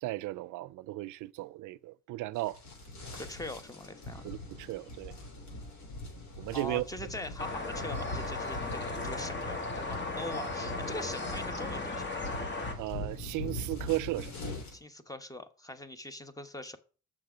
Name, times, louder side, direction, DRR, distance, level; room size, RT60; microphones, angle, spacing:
voice 1, 0.0-2.6 4.2-5.1 6.4-6.8 12.8-14.3, right 17 dB, 80° right, 0.5 m, -35 dB
sound 1, 2.4-14.8, left 1 dB, 65° left, 3.3 m, -42 dB
voice 2, 3.2-4.3 6.5-12.3 14.7-16.8, left 1 dB, 10° left, 1.0 m, -42 dB
sound 2, 7.4-12.7, left 3 dB, 40° left, 1.8 m, -36 dB
6.6 x 6.1 x 4.9 m
cardioid pair, 90°, 30 cm